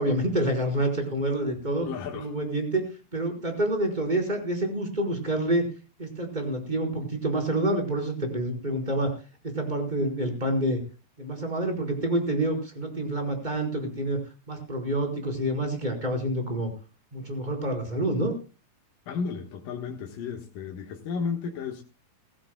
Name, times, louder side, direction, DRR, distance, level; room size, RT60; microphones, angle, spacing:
voice 1, 0.0-1.9 2.1-2.9 3.1-5.6 6.0-9.1 9.4-10.8 11.2-14.2 14.5-16.7 17.1-18.3, right 1 dB, 10° right, 4.8 m, -27 dB
voice 2, 1.8-2.3 19.1-21.8, left 5 dB, 75° left, 3.1 m, -33 dB
21.0 x 16.0 x 2.3 m
omnidirectional pair, 4.0 m